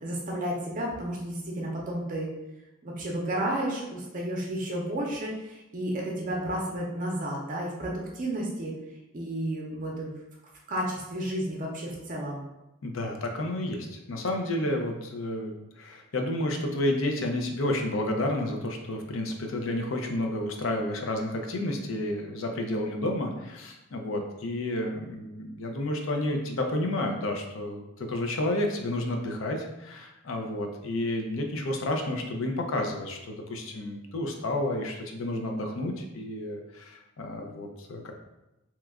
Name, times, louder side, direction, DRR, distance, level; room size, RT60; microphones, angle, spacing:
voice 1, 0.0-2.3 2.8-8.7 9.1-10.1 10.7-12.4, right 1 dB, 40° right, -2 dB, 0.6 m, -32 dB
voice 2, 12.8-38.1, left 1 dB, 70° left, 3 dB, 0.5 m, -31 dB
3.0 x 2.3 x 3.4 m, 0.96 s
head